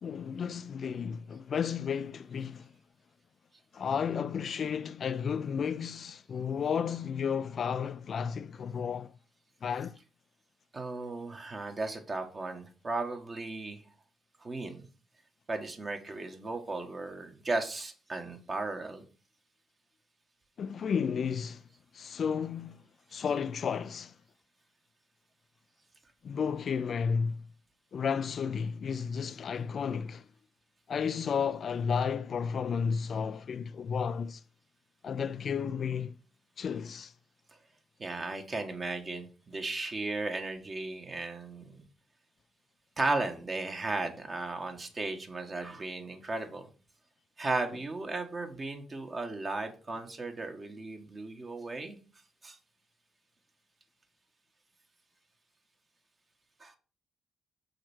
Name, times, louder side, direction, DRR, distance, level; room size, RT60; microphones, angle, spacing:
voice 1, 0.0-2.7 3.7-9.1 9.6-10.0 20.6-21.6 21.9-22.8 23.1-24.1 26.2-27.4 27.9-30.2 30.9-34.4 35.0-36.2 36.6-37.1, left 6 dB, 55° left, 0.3 m, -32 dB
voice 2, 10.7-13.8 14.4-14.9 15.5-19.0 38.0-41.8 43.0-46.7 47.4-52.0 52.4-52.6 56.6-56.7, right 3 dB, 40° right, 1.8 m, -35 dB
6.4 x 4.4 x 6.2 m
supercardioid pair, 55°, 0 cm